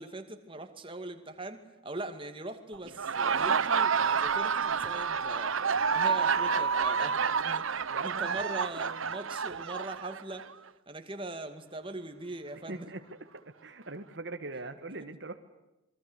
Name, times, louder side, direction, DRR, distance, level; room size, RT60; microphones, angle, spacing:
voice 1, 0.0-5.6 5.9-7.7 8.0-10.5 10.9-12.9, right 2 dB, 25° right, 7 dB, 2.3 m, -41 dB
Laughter, 2.9-10.5, right 6 dB, 85° right, 1.0 m, -29 dB
voice 2, 7.9-8.2 12.7-13.0 13.6-15.4, right 2 dB, 55° right, 7 dB, 1.6 m, -40 dB
28.0 x 22.5 x 8.2 m, 0.96 s
head